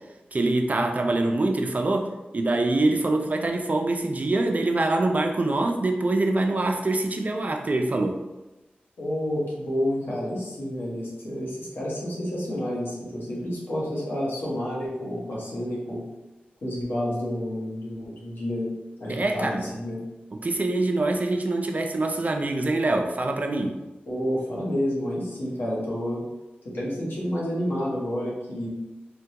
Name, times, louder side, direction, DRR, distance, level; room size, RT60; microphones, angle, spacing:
voice 1, 0.3-8.2 19.1-19.7 20.3-23.8, right 2 dB, 45° right, 3 dB, 0.4 m, -24 dB
voice 2, 9.0-16.0 16.6-18.7 19.0-20.0 24.1-26.2 26.6-28.7, equal, 85° left, -5 dB, 1.0 m, -29 dB
3.4 x 2.2 x 2.8 m, 1.0 s
wide cardioid pair, 60°, 4 cm